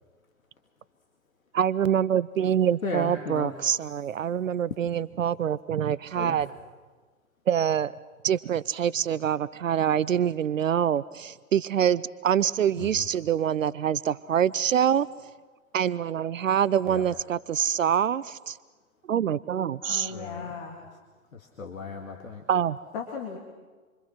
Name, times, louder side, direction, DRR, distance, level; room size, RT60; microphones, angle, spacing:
voice 1, 1.5-6.5 7.5-7.9 8.2-15.3 15.7-18.6 19.0-20.1 22.5-22.8, right 9 dB, 65° right, 19 dB, 0.6 m, -25 dB
voice 2, 2.8-3.5 6.1-6.4 12.8-13.0 16.9-17.0 20.1-20.5 21.3-22.4, left 3 dB, 70° left, 3 dB, 2.3 m, -36 dB
voice 3, 19.8-20.8 22.9-23.4, left 5 dB, 40° left, 1 dB, 3.2 m, -36 dB
26.5 x 25.0 x 6.1 m, 1.4 s
figure-of-eight pair, 115°, 42 cm